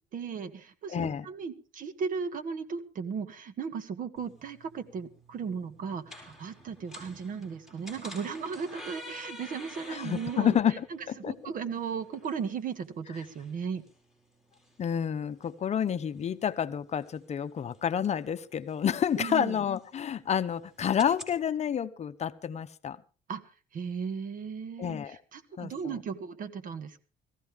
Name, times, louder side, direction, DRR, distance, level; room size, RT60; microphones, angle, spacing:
voice 1, 0.1-10.5 10.9-11.0 11.2-13.8 19.2-19.6 23.3-23.4 23.7-27.0, right 6 dB, 55° right, 12 dB, 1.6 m, -36 dB
voice 2, 0.9-1.3 9.9-11.5 14.8-23.0 24.8-25.2 25.6-25.9, left 8 dB, 40° left, 12 dB, 0.8 m, -29 dB
sound 1, 4.2-21.4, left 1 dB, ahead, 4.6 m, -51 dB
18.5 x 14.5 x 3.5 m, 0.36 s
cardioid pair, 110°, 17 cm